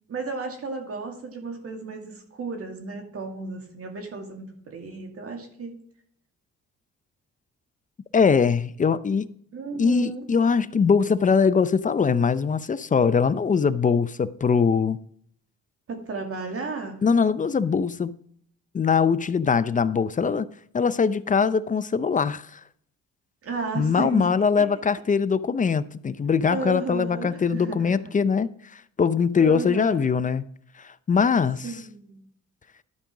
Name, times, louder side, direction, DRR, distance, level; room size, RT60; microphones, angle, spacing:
voice 1, 0.1-5.7 9.5-10.2 15.9-17.0 23.4-24.3 26.5-28.1 29.4-30.1 31.6-32.3, right 4 dB, 50° right, 2.3 m, -34 dB
voice 2, 8.1-9.3 9.8-15.0 17.0-18.1 18.7-20.5 20.7-22.6 23.8-30.5 30.8-31.7, left 5 dB, 25° left, 0.5 m, -22 dB
12.0 x 5.1 x 4.9 m
cardioid pair, 90°, 30 cm